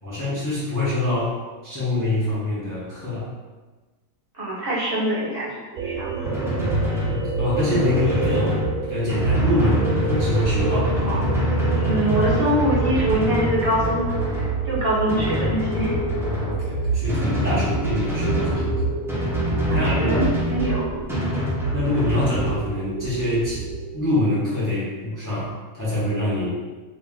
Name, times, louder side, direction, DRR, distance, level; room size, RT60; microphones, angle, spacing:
voice 1, 0.0-1.4 1.6-3.3 7.1-11.1 14.7-14.8 16.4-18.9 19.5-20.3 21.3-23.7 23.9-26.6, left 1 dB, 15° left, -9 dB, 0.8 m, -25 dB
voice 2, 4.4-5.5 5.8-6.2 9.6-9.7 11.0-11.5 11.8-15.9 19.7-20.9, right 1 dB, 50° right, -7 dB, 0.9 m, -24 dB
sound 1, 5.8-24.0, right 4 dB, 90° right, 1.1 m, -28 dB
Drum, 6.2-22.6, left 1 dB, 5° right, 0.3 m, -26 dB
3.0 x 2.7 x 3.5 m, 1.3 s
omnidirectional pair, 1.5 m